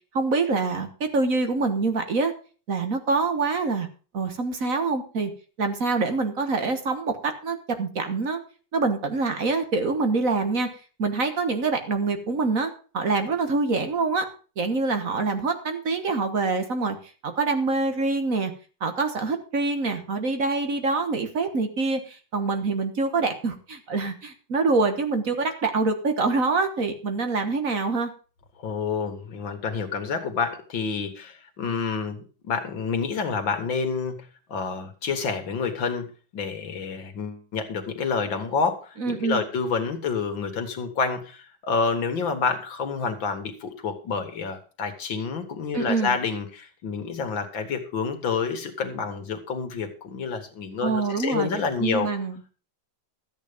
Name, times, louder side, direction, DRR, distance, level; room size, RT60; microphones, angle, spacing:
voice 1, 0.1-2.3 2.7-3.9 4.1-5.3 5.6-8.4 8.7-10.7 11.0-14.3 14.6-17.0 17.2-18.5 18.8-28.1 39.0-39.4 45.7-46.2 50.8-51.5 51.8-52.4, right 3 dB, 50° right, 7 dB, 1.7 m, -25 dB
voice 2, 28.6-36.1 36.3-52.1, left 5 dB, 85° left, 6 dB, 2.5 m, -28 dB
13.5 x 8.4 x 5.2 m, 0.38 s
omnidirectional pair, 2.0 m